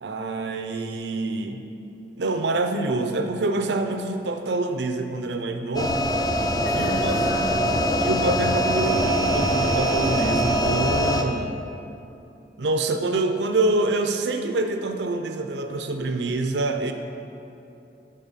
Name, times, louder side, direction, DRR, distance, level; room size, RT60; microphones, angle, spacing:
voice 1, 0.0-1.6 2.2-6.1 6.7-7.2 8.0-11.6 12.6-16.9, right 2 dB, 80° right, 6 dB, 0.5 m, -26 dB
sound 1, 5.7-11.2, equal, 20° left, 0.4 m, -23 dB
voice 2, 6.6-8.0, equal, 50° left, -6 dB, 1.4 m, -32 dB
11.0 x 3.9 x 5.5 m, 2.7 s
head